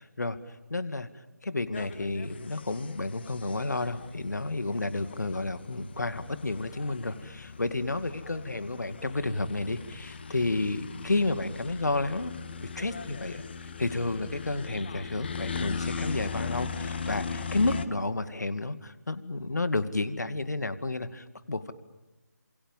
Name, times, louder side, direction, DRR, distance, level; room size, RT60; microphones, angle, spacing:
voice 1, 0.7-1.1 1.4-12.3 12.6-13.4 13.8-21.7, left 2 dB, 65° left, 12 dB, 2.2 m, -31 dB
sound 1, 1.7-17.9, left 5 dB, 35° left, 1.5 m, -39 dB
28.5 x 27.5 x 7.4 m, 1.0 s
figure-of-eight pair, 160°, 10 cm